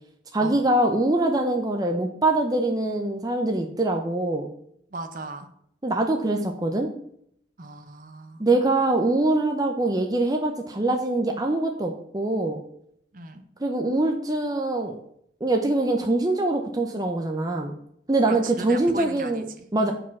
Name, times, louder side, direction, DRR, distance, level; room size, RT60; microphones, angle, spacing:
voice 1, 0.3-4.5 5.8-6.9 8.4-12.6 13.6-15.0 15.4-17.7 18.1-19.4 19.7-19.9, right 2 dB, 20° right, 3 dB, 0.6 m, -23 dB
voice 2, 4.9-5.5 7.6-8.4 13.1-13.4 18.3-19.7, right 3 dB, 45° right, 7 dB, 0.9 m, -38 dB
7.9 x 5.0 x 6.0 m, 0.69 s
head